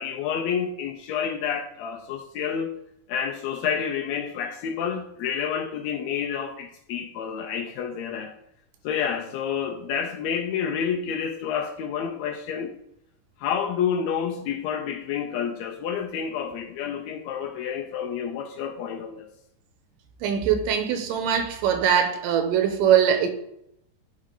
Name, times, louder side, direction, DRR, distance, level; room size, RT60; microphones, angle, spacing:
voice 1, 0.0-2.7 3.1-8.3 8.8-12.8 13.4-19.3, left 7 dB, 90° left, 1.5 m, -29 dB
voice 2, 20.2-23.3, right 8 dB, 85° right, 2.3 m, -22 dB
9.7 x 3.6 x 3.7 m
omnidirectional pair, 3.8 m